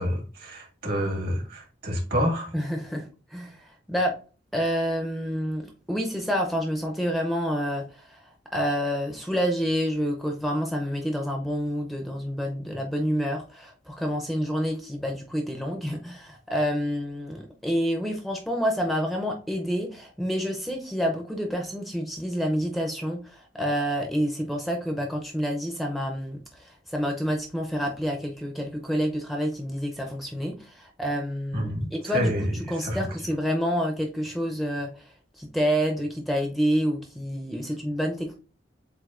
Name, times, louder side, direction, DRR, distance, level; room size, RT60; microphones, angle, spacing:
voice 1, 0.0-2.5 31.5-33.0, equal, 55° right, 1 dB, 1.6 m, -28 dB
voice 2, 2.5-4.2 4.5-35.1 35.4-38.4, equal, ahead, 1 dB, 0.5 m, -28 dB
7.6 x 2.6 x 2.4 m, 0.36 s
head